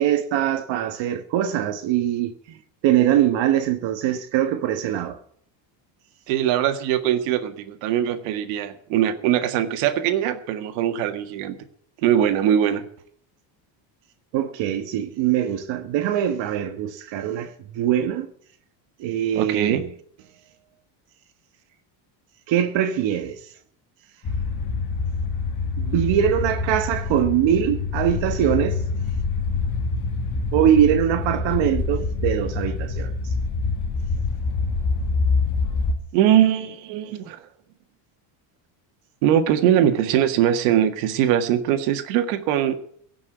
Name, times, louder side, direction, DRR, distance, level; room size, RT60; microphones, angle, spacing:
voice 1, 0.0-2.6 2.8-5.2 14.3-18.3 19.0-19.8 22.5-23.4 25.8-28.8 30.5-33.1, right 10 dB, 60° right, 1.4 m, -22 dB
voice 2, 6.3-11.5 12.0-12.8 19.4-19.8 36.1-37.4 39.2-42.7, right 10 dB, 85° right, 1.9 m, -21 dB
sound 1, 24.2-36.0, left 4 dB, 35° left, 2.1 m, -25 dB
16.5 x 6.2 x 9.3 m
cardioid pair, 135°, 50 cm